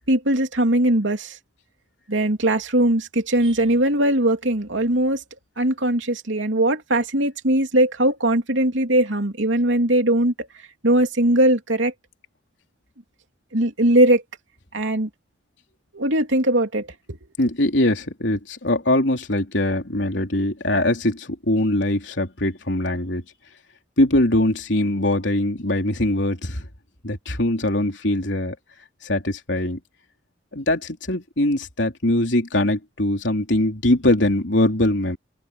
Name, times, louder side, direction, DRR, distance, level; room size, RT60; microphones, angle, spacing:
voice 1, 0.1-1.3 2.1-5.2 5.6-10.3 10.8-11.9 13.5-14.2 14.7-15.1 15.9-17.2, right 1 dB, 85° right, 3.0 m, -20 dB
voice 2, 17.4-23.2 24.0-26.7 27.0-28.6 29.0-29.8 30.5-35.2, left 1 dB, 75° left, 3.5 m, -22 dB
open air
head